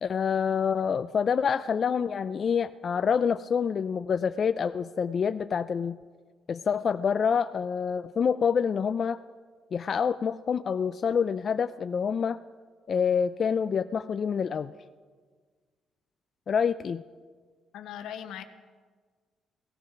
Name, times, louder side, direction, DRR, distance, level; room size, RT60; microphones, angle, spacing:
voice 1, 0.0-6.0 6.5-9.2 9.7-12.4 12.9-14.7 16.5-17.0, left 6 dB, 50° left, 11 dB, 0.4 m, -27 dB
voice 2, 17.7-18.4, left 10 dB, 85° left, 8 dB, 1.2 m, -39 dB
17.5 x 13.5 x 5.8 m, 1.5 s
cardioid pair, 90°, 0 cm